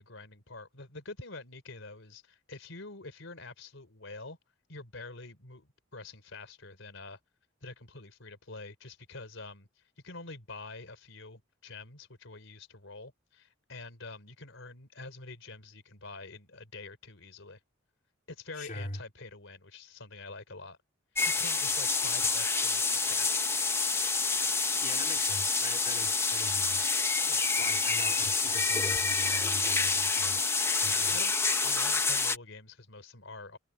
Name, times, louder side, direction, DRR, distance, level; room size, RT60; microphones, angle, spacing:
voice 1, 0.0-4.4 4.7-7.2 7.6-17.6 18.3-20.8 21.3-23.5 27.3-27.4 30.8-31.3 31.6-33.6, left 3 dB, 70° left, 4.1 m, -46 dB
voice 2, 18.6-19.0 24.8-27.1 27.6-30.4 30.8-31.2, left 2 dB, 40° left, 3.6 m, -41 dB
sound 1, 21.1-32.4, left 4 dB, 15° left, 1.0 m, -28 dB
head